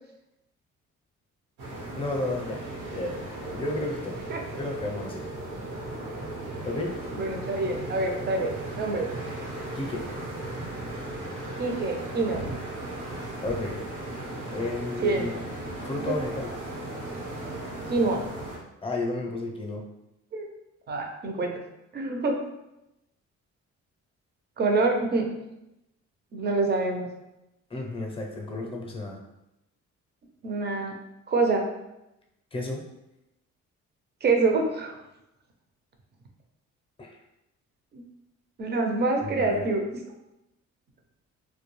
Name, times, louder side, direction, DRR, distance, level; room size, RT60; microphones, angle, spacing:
sound 1, 1.6-18.6, right 2 dB, 85° right, 1.0 m, -36 dB
voice 1, 2.0-3.2 3.5-4.2 4.5-5.2 6.6-7.0 9.7-10.0 13.4-13.8 14.5-15.4 15.8-16.5 18.8-19.9 27.7-29.2 32.5-32.8 37.0-37.2 39.2-39.7, left 2 dB, 20° left, 0 dB, 0.6 m, -32 dB
voice 2, 7.2-9.1 11.6-12.4 15.0-15.3 15.8-16.2 17.9-18.2 20.3-20.5 20.9-21.5 21.9-22.4 24.6-25.3 26.3-27.1 30.4-30.9 31.3-31.6 34.2-35.0 37.9-38.1 38.6-40.0, right 3 dB, 35° right, 2 dB, 0.5 m, -26 dB
2.3 x 2.2 x 3.0 m, 0.91 s
cardioid pair, 90°, 30 cm